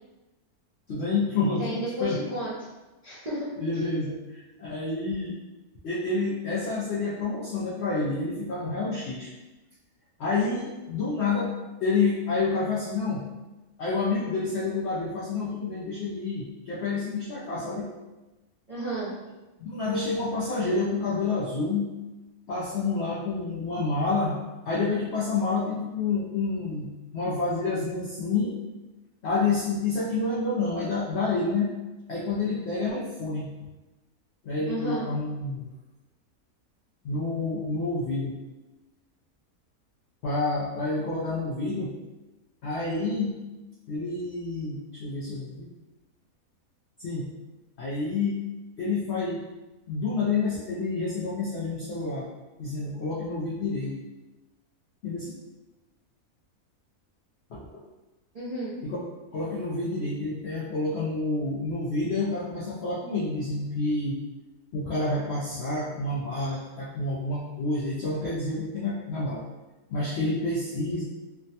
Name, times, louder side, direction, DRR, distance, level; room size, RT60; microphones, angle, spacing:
voice 1, 0.9-2.2 3.6-5.4 5.8-9.3 10.2-11.5 11.8-13.3 13.8-17.9 19.6-21.9 22.5-28.6 29.2-31.7 32.1-33.5 34.4-35.7 37.0-38.3 40.2-41.9 42.6-43.4 43.9-45.7 47.0-47.3 47.8-48.4 48.8-49.4 49.9-52.3 52.6-54.0 55.0-55.4 57.5-57.7 58.8-59.1 59.3-64.2 64.7-69.4 69.9-71.0, left 3 dB, 70° left, -6 dB, 0.6 m, -28 dB
voice 2, 1.6-2.5 3.0-3.5 18.7-19.1 34.7-35.1 58.3-58.7, right 1 dB, 65° right, -10 dB, 0.3 m, -32 dB
3.3 x 2.1 x 2.7 m, 1.1 s
omnidirectional pair, 1.6 m